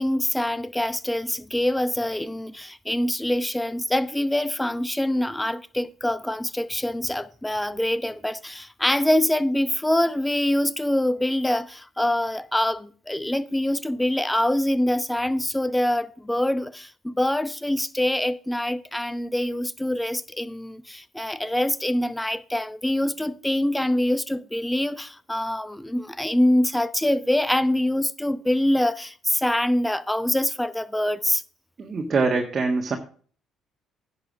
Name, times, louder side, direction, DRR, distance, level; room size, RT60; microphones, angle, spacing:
voice 1, 0.0-31.4, left 1 dB, 10° left, 0.8 m, -25 dB
voice 2, 31.8-33.0, right 4 dB, 40° right, 1.6 m, -24 dB
10.5 x 5.7 x 6.2 m
hypercardioid pair, 60°, 0 cm